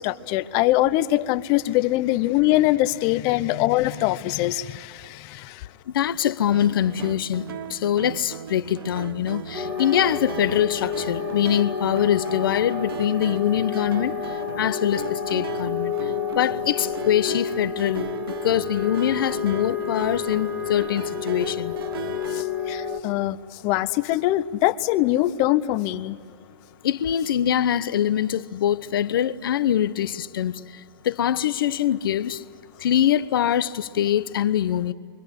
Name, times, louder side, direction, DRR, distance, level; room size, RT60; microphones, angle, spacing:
voice 1, 0.0-5.7 22.3-26.2, left 16 dB, 30° left, 0.7 m, -23 dB
voice 2, 5.9-14.1 14.6-18.1 18.4-21.7 26.8-30.6 31.0-32.4 32.8-34.9, left 10 dB, 65° left, 0.9 m, -23 dB
sound 1, 6.5-22.4, right 10 dB, 70° right, 1.0 m, -38 dB
sound 2, 9.5-23.0, left 7 dB, 10° right, 1.3 m, -30 dB
29.0 x 25.0 x 8.2 m
hypercardioid pair, 165°, 12 cm